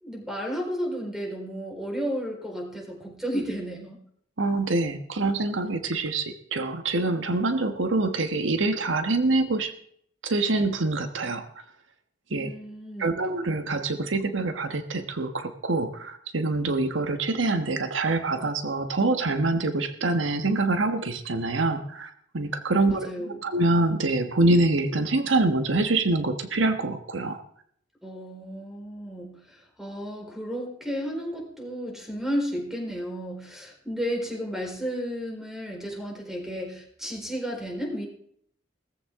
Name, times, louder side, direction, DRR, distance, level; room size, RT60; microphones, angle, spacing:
voice 1, 0.0-4.0 12.3-13.2 22.7-23.4 28.0-38.0, equal, ahead, 0 dB, 4.3 m, -33 dB
voice 2, 4.4-9.7 10.2-11.5 12.3-12.5 13.0-27.4, right 2 dB, 85° right, 8 dB, 1.3 m, -25 dB
18.0 x 14.5 x 3.7 m, 0.64 s
head